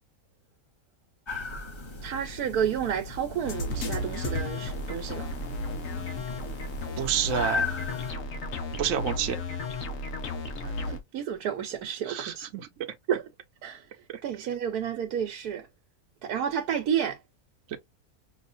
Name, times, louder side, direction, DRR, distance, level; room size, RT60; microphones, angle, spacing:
sound 1, 1.3-8.1, left 3 dB, 20° left, 0.9 m, -37 dB
voice 1, 2.0-5.3 10.6-12.5 13.1-13.2 13.6-13.8 14.2-15.7 16.2-17.2, right 8 dB, 80° right, 1.3 m, -31 dB
sound 2, 3.4-11.0, left 2 dB, 60° left, 1.3 m, -34 dB
voice 2, 7.0-7.7 8.8-9.4 12.0-12.7 14.1-14.2 17.7-17.8, right 9 dB, 65° right, 1.0 m, -29 dB
6.0 x 2.4 x 2.5 m
omnidirectional pair, 1.6 m